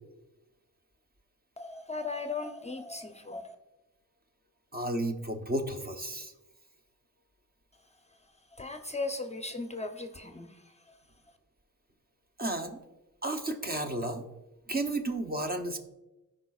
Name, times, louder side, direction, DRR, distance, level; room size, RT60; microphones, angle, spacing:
voice 1, 1.6-3.6 8.1-8.2 8.5-11.0, left 3 dB, 20° left, 6 dB, 0.6 m, -38 dB
voice 2, 4.7-6.3 12.4-12.8 13.2-14.2 14.7-15.8, right 1 dB, 30° right, 5 dB, 0.8 m, -32 dB
14.5 x 4.9 x 2.4 m, 1.0 s
cardioid pair, 75°, 33 cm